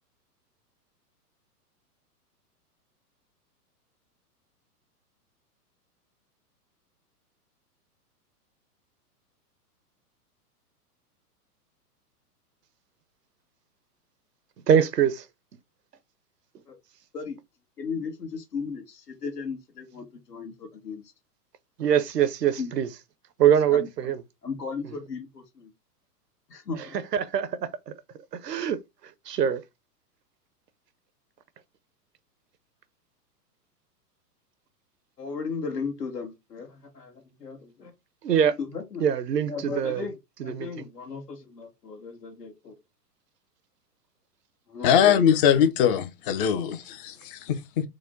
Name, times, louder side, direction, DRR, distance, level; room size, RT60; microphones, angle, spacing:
voice 1, 14.7-15.2 21.8-22.9 23.4-24.2 24.8-25.0 26.9-27.9 28.3-28.8 29.3-29.6 38.2-38.5 39.0-40.1 40.4-40.7, right 8 dB, 85° right, 0.7 m, -23 dB
voice 2, 17.8-21.0 22.6-22.7 23.4-24.1 24.4-25.7 26.5-27.0 35.2-37.9 38.6-39.0 39.5-40.1 40.4-42.7 44.7-45.3, left 5 dB, 80° left, 1.6 m, -36 dB
voice 3, 44.8-47.9, left 8 dB, 35° left, 0.6 m, -22 dB
4.8 x 2.2 x 3.7 m
hypercardioid pair, 110°, 47 cm